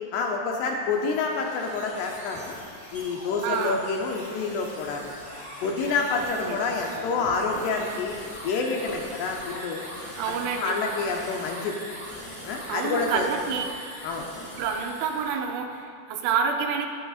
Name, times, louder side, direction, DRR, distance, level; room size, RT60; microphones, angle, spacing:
voice 1, 0.1-2.6 2.9-5.1 5.6-8.2 8.4-9.8 10.3-11.7 12.5-13.2 14.0-14.3, left 4 dB, 75° left, 1 dB, 2.6 m, -28 dB
sound 1, 0.8-15.4, equal, 50° left, 0.5 m, -41 dB
voice 2, 3.4-3.8 6.1-6.6 10.2-10.8 12.7-13.8 14.6-16.9, right 6 dB, 85° right, 3 dB, 3.2 m, -28 dB
20.5 x 8.2 x 2.4 m, 2.2 s
omnidirectional pair, 5.2 m